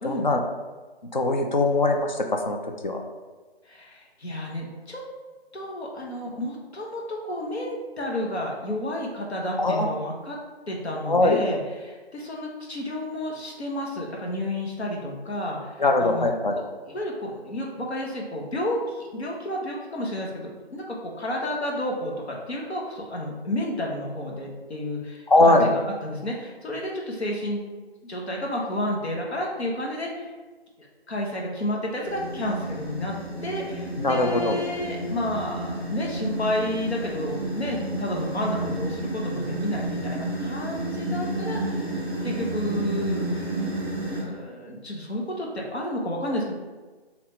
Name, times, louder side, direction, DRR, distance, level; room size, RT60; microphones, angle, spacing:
voice 1, 0.0-0.4 1.1-2.6 2.8-3.0 9.6-9.9 11.1-11.4 15.8-16.6 25.3-25.7 34.0-34.6, left 2 dB, 45° left, 3 dB, 0.4 m, -21 dB
voice 2, 3.7-5.0 5.5-10.4 10.7-16.3 16.9-27.6 28.0-30.3 30.8-33.1 33.4-43.5 44.1-46.5, left 1 dB, 90° left, -1 dB, 1.3 m, -31 dB
sound 1, 32.0-44.2, right 1 dB, 20° left, 0.8 m, -31 dB
3.6 x 2.8 x 4.1 m, 1.3 s
hypercardioid pair, 170°, 32 cm